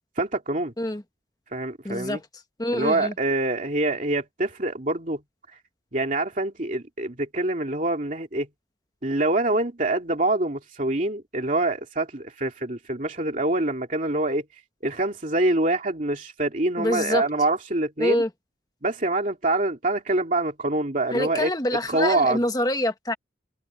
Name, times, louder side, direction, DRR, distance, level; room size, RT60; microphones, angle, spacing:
voice 1, 0.2-0.7 1.5-2.2 2.7-5.2 5.9-8.5 9.0-14.4 14.8-18.2 18.8-21.5 21.9-22.4, right 2 dB, 40° right, 2.7 m, -25 dB
voice 2, 1.8-2.2 2.6-3.1 16.8-17.2 18.0-18.3 21.1-23.1, left 1 dB, 20° left, 1.3 m, -25 dB
head